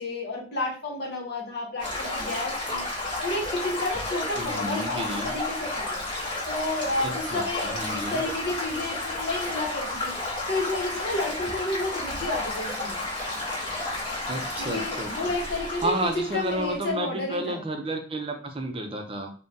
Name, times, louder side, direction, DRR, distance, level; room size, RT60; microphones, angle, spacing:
voice 1, 0.0-13.0 14.6-17.6, left 2 dB, 60° left, -2 dB, 0.9 m, -31 dB
Stream / Gurgling / Trickle dribble, 1.8-16.9, left 2 dB, 30° left, 1.0 m, -32 dB
voice 2, 4.4-5.3 7.0-8.2 14.3-15.3 15.8-19.3, right 1 dB, 30° right, 4 dB, 0.5 m, -31 dB
3.7 x 2.2 x 2.6 m, 0.40 s
head